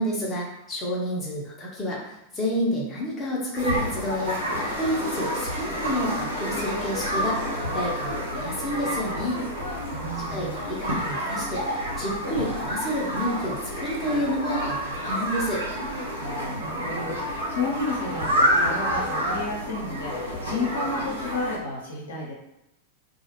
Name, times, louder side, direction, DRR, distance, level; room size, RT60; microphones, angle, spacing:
voice 1, 0.0-4.4 4.8-7.4 7.7-9.4 10.3-15.6, equal, 15° left, -5 dB, 0.9 m, -29 dB
sound 1, 3.5-21.6, equal, 75° right, 0.8 m, -29 dB
voice 2, 9.9-10.7 16.2-22.3, left 3 dB, 70° left, -4 dB, 0.8 m, -32 dB
2.5 x 2.3 x 3.0 m, 0.86 s
figure-of-eight pair, 90°, 0 cm